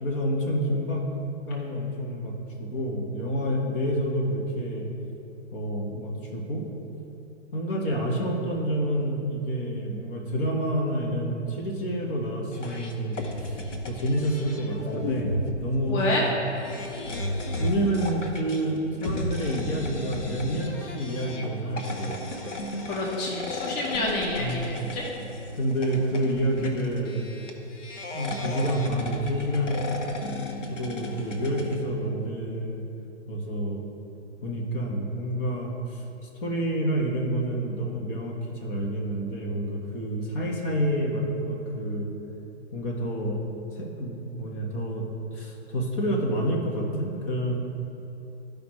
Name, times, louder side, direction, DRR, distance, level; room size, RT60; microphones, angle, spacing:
voice 1, 0.0-1.0 1.5-4.9 5.5-6.6 7.5-13.6 13.9-16.0 16.8-16.9 17.6-22.3 24.4-24.9 25.6-27.4 28.1-29.8 30.7-32.8 33.3-33.9 34.4-36.0 36.4-38.4 38.6-42.1 42.7-43.4 43.7-45.0 45.3-47.6, equal, 45° left, 0 dB, 1.4 m, -28 dB
sound 1, 12.5-31.8, left 2 dB, 80° left, 1.2 m, -35 dB
voice 2, 15.9-16.2 22.9-25.0, left 2 dB, 30° left, -2 dB, 1.2 m, -28 dB
13.5 x 5.1 x 3.2 m, 2.8 s
hypercardioid pair, 120°, 36 cm